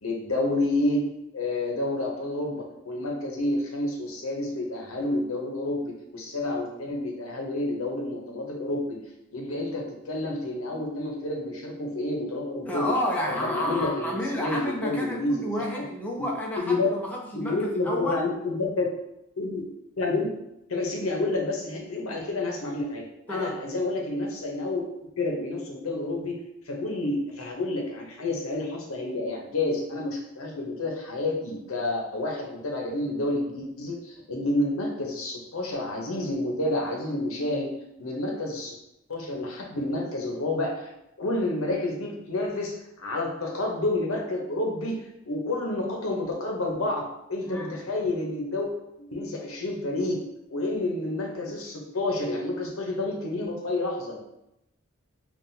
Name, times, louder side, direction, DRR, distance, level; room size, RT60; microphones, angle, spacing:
voice 1, 0.0-1.0 1.3-9.0 9.3-13.0 13.3-15.5 15.7-15.9 16.2-16.3 16.6-16.9 17.3-18.9 19.4-19.6 20.0-20.3 20.7-24.8 25.2-26.3 26.7-37.7 38.0-38.7 39.1-40.9 41.2-48.7 49.0-50.2 50.5-54.2, left 2 dB, 85° left, 1 dB, 0.8 m, -29 dB
voice 2, 12.7-18.2 23.3-23.6 47.4-47.8, left 1 dB, 5° left, -2 dB, 0.5 m, -31 dB
5.6 x 2.5 x 2.7 m, 0.85 s
head